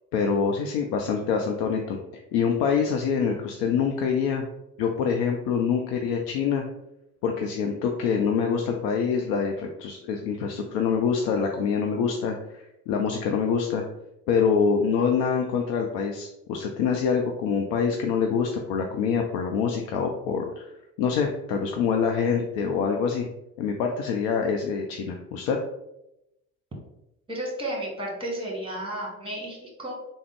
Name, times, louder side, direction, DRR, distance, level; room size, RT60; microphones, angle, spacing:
voice 1, 0.1-2.0 2.3-4.5 4.8-6.6 7.2-13.8 14.3-20.7 21.0-23.3 23.6-25.6, left 6 dB, 60° left, 2 dB, 0.5 m, -25 dB
voice 2, 27.3-29.9, right 1 dB, 10° right, -1 dB, 1.3 m, -33 dB
3.5 x 2.0 x 3.5 m, 0.88 s
hypercardioid pair, 60°, 46 cm